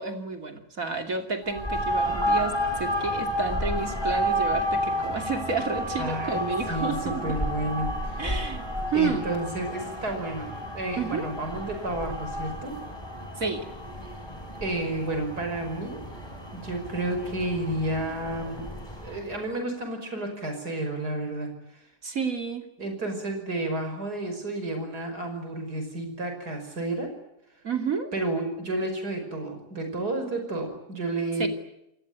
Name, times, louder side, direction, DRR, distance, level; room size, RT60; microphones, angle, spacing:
voice 1, 0.0-7.2 8.2-8.6 8.9-9.2 11.0-11.3 13.4-13.7 22.0-22.7 27.6-28.1 31.4-31.5, right 4 dB, 60° right, 5 dB, 3.2 m, -30 dB
sound 1, 1.4-19.4, equal, 15° left, 5.0 m, -31 dB
voice 2, 6.0-8.3 8.9-12.8 14.6-16.0 16.5-18.6 19.0-21.8 22.8-27.1 28.1-31.5, right 1 dB, 90° right, 6 dB, 6.0 m, -31 dB
28.5 x 20.0 x 9.5 m, 0.84 s
omnidirectional pair, 1.6 m